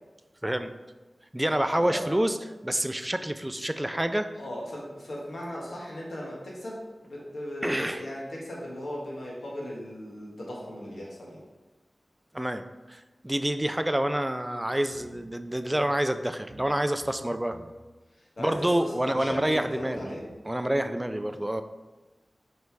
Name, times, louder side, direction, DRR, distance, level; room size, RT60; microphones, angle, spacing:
voice 1, 0.4-0.7 1.3-2.4 2.6-4.3 7.6-8.0 12.3-17.6 18.4-20.1 20.5-21.6, right 1 dB, 15° right, 9 dB, 0.4 m, -28 dB
voice 2, 1.8-2.2 4.4-11.4 18.1-20.2, equal, 80° left, -4 dB, 1.5 m, -37 dB
sound 1, 14.9-15.4 15.8-15.9 16.5-16.8 17.0-17.8 18.5-18.6 19.1-20.4, right 2 dB, 65° right, 0.8 m, -50 dB
5.4 x 3.9 x 4.6 m, 1.2 s
wide cardioid pair, 75°, 0 cm